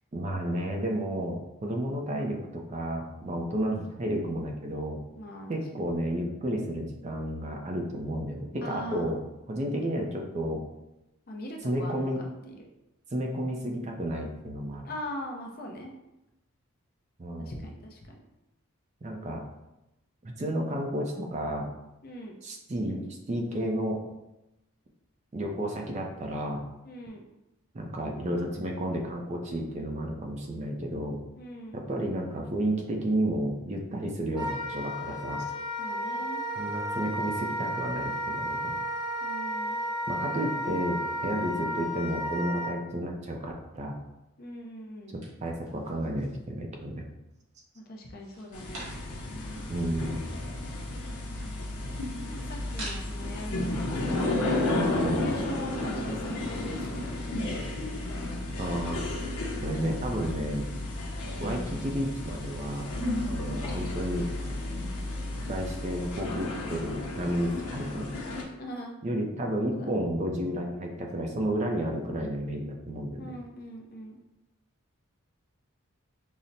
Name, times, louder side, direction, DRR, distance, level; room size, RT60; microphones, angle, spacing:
voice 1, 0.1-5.0 5.5-9.2 9.5-10.6 11.6-12.2 13.1-14.9 17.2-17.6 19.0-19.5 20.2-21.7 22.4-24.0 25.3-26.6 27.7-31.2 31.7-35.4 36.6-38.8 40.1-44.0 45.4-47.1 49.7-50.3 54.9-55.2 58.6-59.3 59.6-60.7 61.4-62.9 63.3-64.3 65.5-68.2 69.0-73.3, right 1 dB, 30° right, 1 dB, 0.4 m, -32 dB
voice 2, 5.1-5.5 8.6-9.2 11.3-12.6 14.9-15.9 17.4-18.1 22.0-22.4 26.8-27.2 31.4-31.8 35.8-36.4 39.2-39.8 44.4-45.1 47.7-48.9 52.3-54.3 54.8-57.6 68.6-68.9 69.7-69.9 73.2-74.2, equal, 45° left, 1 dB, 0.5 m, -41 dB
Wind instrument woodwind instrument, 34.3-42.7, equal, 20° left, 0.9 m, -33 dB
sound 1, 45.2-46.5 46.9-47.6 48.1-49.4 49.7-49.8 50.0-53.3, right 1 dB, 80° right, 1.4 m, -46 dB
sound 2, 48.5-68.4, left 2 dB, 90° left, 0.7 m, -33 dB
5.6 x 2.0 x 2.6 m, 0.93 s
head